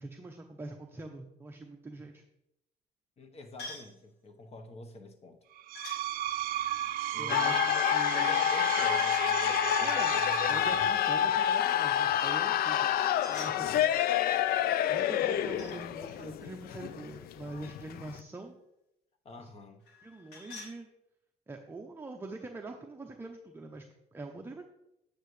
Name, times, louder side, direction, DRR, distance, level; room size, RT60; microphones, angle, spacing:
voice 1, 0.0-2.2 7.2-7.6 7.9-8.4 9.8-10.1 10.5-13.0 13.3-13.9 14.9-18.6 19.4-19.5 20.0-20.9 21.5-23.9 24.1-24.6, right 2 dB, 15° right, 3 dB, 0.6 m, -44 dB
voice 2, 3.2-5.4 7.1-11.0 13.4-13.9 19.2-19.8, left 2 dB, 40° left, 6 dB, 1.1 m, -47 dB
sound 1, 3.6-4.0 5.7-6.0 6.6-8.4 13.0-14.0 14.9-15.8 16.1-18.0 19.8-20.8, left 3 dB, 90° left, 1.9 m, -49 dB
Screech, 5.6-11.0, right 12 dB, 60° right, 0.4 m, -34 dB
sound 2, 7.3-18.2, left 11 dB, 65° left, 0.4 m, -28 dB
8.9 x 6.6 x 3.2 m, 0.85 s
cardioid pair, 110°, 17 cm